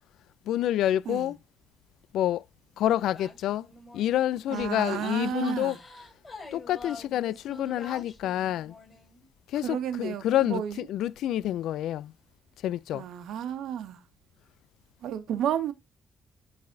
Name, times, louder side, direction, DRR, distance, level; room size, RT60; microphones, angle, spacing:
voice 1, 0.5-1.4 2.1-2.4 2.8-3.7 3.9-5.8 6.5-8.7 9.5-12.1 12.6-13.1, left 12 dB, 80° left, 0.4 m, -28 dB
sound 1, 3.1-4.2 4.5-9.2, left 3 dB, 25° left, 5.8 m, -46 dB
voice 2, 4.5-5.8 9.6-10.8 12.9-14.0 15.0-15.7, right 9 dB, 80° right, 1.4 m, -32 dB
11.5 x 4.0 x 2.6 m
cardioid pair, 90°, 0 cm